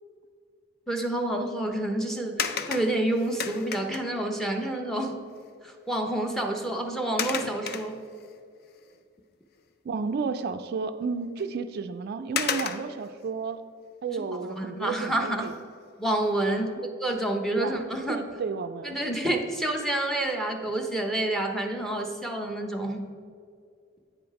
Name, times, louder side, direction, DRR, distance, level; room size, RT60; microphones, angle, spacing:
voice 1, 0.9-5.2 5.6-8.0 14.1-14.2 14.6-15.5 16.0-16.7 17.0-18.2 18.8-23.1, right 1 dB, ahead, 3 dB, 0.7 m, -28 dB
sound 1, 2.4-4.2 5.4-5.5 5.9-6.1 7.2-8.4 8.9-9.0 11.4-11.5 12.4-13.1 15.4-15.7 16.2-16.3, left 7 dB, 50° left, 0.5 m, -32 dB
voice 2, 9.8-13.6 14.0-15.5 16.5-16.8 17.6-17.8 18.1-19.0, right 5 dB, 55° right, 7 dB, 0.3 m, -32 dB
8.6 x 5.2 x 4.7 m, 2.2 s
head